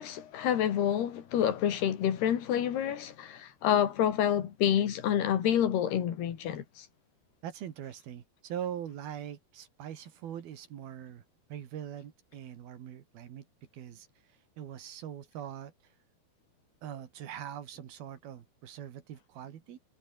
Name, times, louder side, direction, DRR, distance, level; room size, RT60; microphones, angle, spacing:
voice 1, 0.0-6.9, left 10 dB, 90° left, 4.4 m, -28 dB
voice 2, 7.4-11.2 11.5-13.5 13.7-14.1 14.6-15.7 16.8-19.8, right 10 dB, 75° right, 3.9 m, -42 dB
omnidirectional pair, 4.5 m